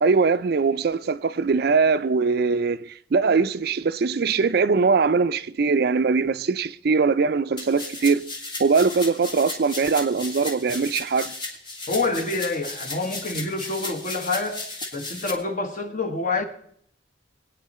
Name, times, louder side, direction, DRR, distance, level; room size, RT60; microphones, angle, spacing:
voice 1, 0.0-8.3 8.6-11.3, right 4 dB, 55° right, 0.4 m, -21 dB
sound 1, 7.6-15.3, left 2 dB, 25° left, 1.8 m, -35 dB
voice 2, 11.9-14.6 14.9-16.4, left 3 dB, 45° left, 1.5 m, -27 dB
22.0 x 8.8 x 4.2 m
head